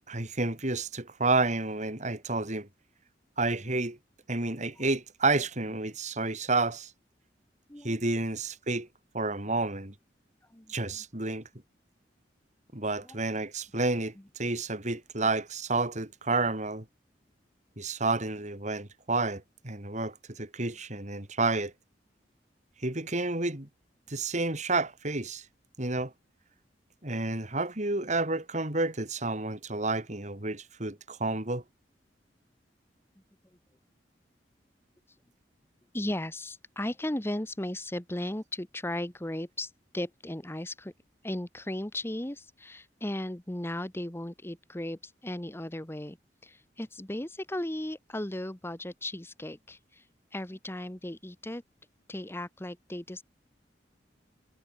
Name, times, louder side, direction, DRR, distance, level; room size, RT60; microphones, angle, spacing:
voice 1, 0.1-2.7 3.4-4.0 4.3-6.9 7.8-8.9 9.1-9.9 10.7-11.4 12.7-16.9 17.8-21.7 22.8-23.7 24.1-25.4 25.8-26.1 27.0-31.6, right 3 dB, 40° right, 3.6 m, -30 dB
voice 2, 35.9-40.9 41.2-46.2 46.4-50.0 50.3-51.6 52.1-53.2, left 1 dB, 15° left, 1.2 m, -36 dB
head